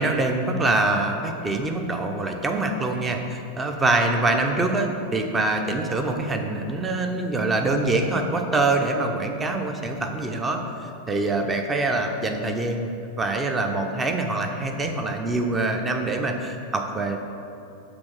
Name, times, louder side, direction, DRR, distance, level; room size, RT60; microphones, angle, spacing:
voice 1, 0.0-12.9 13.2-17.2, right 2 dB, 15° right, 4 dB, 0.7 m, -24 dB
6.1 x 4.1 x 6.2 m, 2.6 s
figure-of-eight pair, 90°, 0 cm